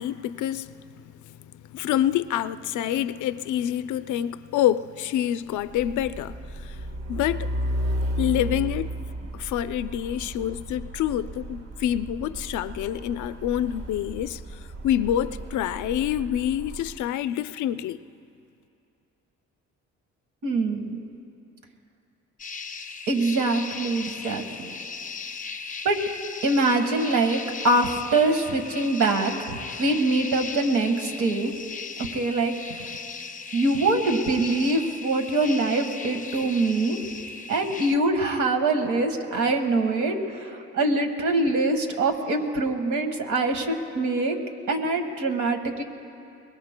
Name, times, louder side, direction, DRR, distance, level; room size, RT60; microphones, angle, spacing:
voice 1, 0.0-7.5 8.2-8.9 9.3-18.0, left 11 dB, 75° left, 0.5 m, -27 dB
Truck, 5.6-17.0, equal, 60° right, 1.5 m, -34 dB
voice 2, 20.4-21.0 23.1-24.7 25.8-26.0 26.4-31.5 32.1-32.9 33.5-37.0 37.5-44.4 44.7-45.8, right 2 dB, 75° right, 1.6 m, -24 dB
sound 1, 22.4-38.0, left 5 dB, 25° left, 0.6 m, -37 dB
24.5 x 21.0 x 2.2 m
cardioid pair, 90°, 30 cm